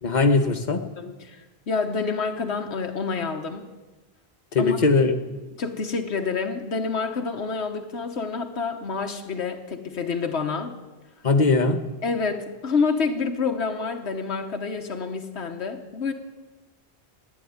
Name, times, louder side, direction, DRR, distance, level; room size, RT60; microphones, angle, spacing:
voice 1, 0.0-0.8 4.5-5.2 11.2-11.8, left 3 dB, 45° left, 6 dB, 1.3 m, -20 dB
voice 2, 1.0-3.7 4.6-4.8 5.6-10.8 12.0-16.1, left 4 dB, 85° left, 4 dB, 1.4 m, -28 dB
15.0 x 10.0 x 9.5 m, 1.2 s
omnidirectional pair, 1.1 m